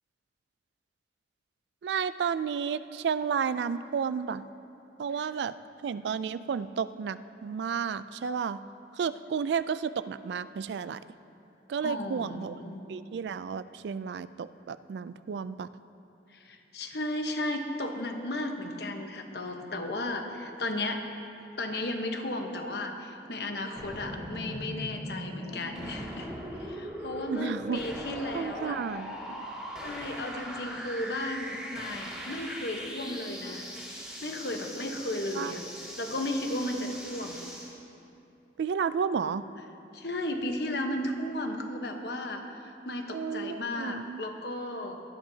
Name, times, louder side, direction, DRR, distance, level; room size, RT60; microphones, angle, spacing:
voice 1, 1.8-4.5 5.0-5.5 5.8-8.6 9.0-11.0 11.7-12.6 12.9-15.7 27.3-27.8 28.3-29.1 35.4-35.5 38.6-39.4 43.1-44.2, right 6 dB, 75° right, 14 dB, 0.3 m, -32 dB
voice 2, 11.8-12.9 16.3-21.0 21.6-29.0 29.8-33.7 34.2-35.6 36.0-37.4 39.9-45.0, left 1 dB, 65° left, 4 dB, 1.0 m, -34 dB
sound 1, 23.8-37.7, equal, 5° right, 2.4 m, -40 dB
17.5 x 12.5 x 2.8 m, 2.8 s
head